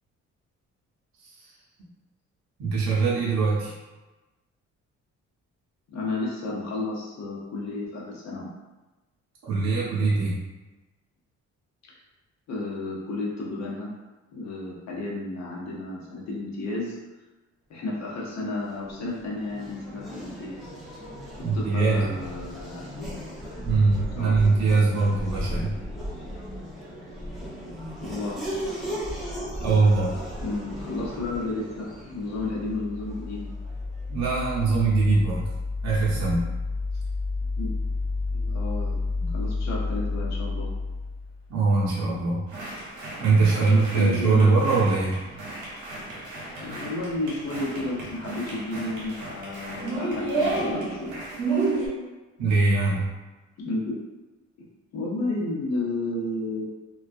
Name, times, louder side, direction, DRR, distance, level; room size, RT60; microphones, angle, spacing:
voice 1, 1.2-1.5 2.6-3.8 9.4-10.3 21.4-22.1 23.6-25.7 29.6-30.1 34.1-35.5 35.8-36.4 39.2-39.3 41.5-42.4 43.2-45.1 52.4-53.0, right 3 dB, 65° right, -6 dB, 0.7 m, -22 dB
voice 2, 5.9-8.5 11.8-11.9 12.5-13.9 14.3-17.0 17.7-20.7 21.3-23.1 24.1-24.5 28.0-28.4 30.4-33.5 37.6-37.7 38.3-39.0 39.3-40.7 43.5-44.4 46.6-51.2 53.6-54.0 54.9-56.7, left 2 dB, 60° left, -4 dB, 0.8 m, -32 dB
Race car auto racing / Accelerating revving vroom, 18.6-34.1, equal, ahead, 0.6 m, -36 dB
sound 1, 32.3-41.4, left 3 dB, 30° left, 1.1 m, -30 dB
sound 2, 42.5-51.9, right 3 dB, 85° right, 0.9 m, -32 dB
2.3 x 2.2 x 2.5 m, 1.1 s
cardioid pair, 90°, 30 cm